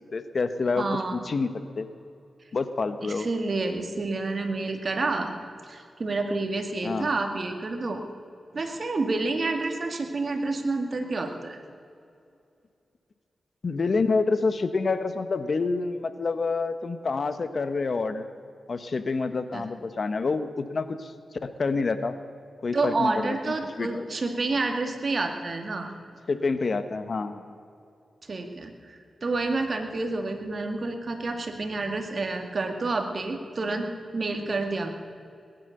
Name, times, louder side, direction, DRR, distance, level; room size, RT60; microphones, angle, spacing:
voice 1, 0.1-1.5 1.8-1.9 2.5-3.3 6.8-7.1 13.6-18.3 18.7-21.1 21.4-22.1 22.6-24.1 26.3-27.4, left 4 dB, 60° left, 11 dB, 1.0 m, -27 dB
voice 2, 0.8-1.2 3.0-5.4 5.7-8.0 8.5-11.6 19.5-19.6 22.7-25.9 28.3-33.9 34.1-34.9, right 3 dB, 55° right, 5 dB, 2.1 m, -29 dB
20.0 x 11.0 x 6.7 m, 2.5 s
cardioid pair, 50°, 0 cm